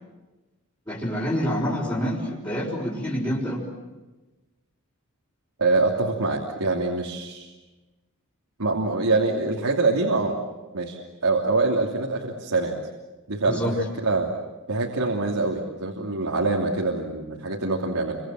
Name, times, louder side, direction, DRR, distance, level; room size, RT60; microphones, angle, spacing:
voice 1, 0.9-3.7 13.4-13.7, equal, 20° left, -7 dB, 4.6 m, -27 dB
voice 2, 5.6-7.5 8.6-10.3 10.7-12.7 13.3-14.3 14.7-18.2, right 3 dB, 90° right, -1 dB, 3.0 m, -24 dB
29.5 x 25.0 x 7.6 m, 1.2 s
head